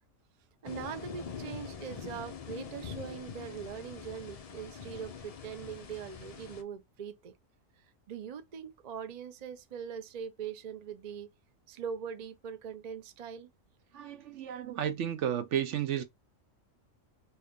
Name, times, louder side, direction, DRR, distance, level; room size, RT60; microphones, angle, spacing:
sound 1, 0.6-6.6, left 6 dB, 70° left, 0.3 m, -44 dB
voice 1, 0.6-7.3 8.1-11.3 11.7-13.5, right 7 dB, 50° right, 0.5 m, -42 dB
voice 2, 13.9-16.0, right 9 dB, 70° right, 0.9 m, -32 dB
3.3 x 2.8 x 3.5 m
omnidirectional pair, 1.4 m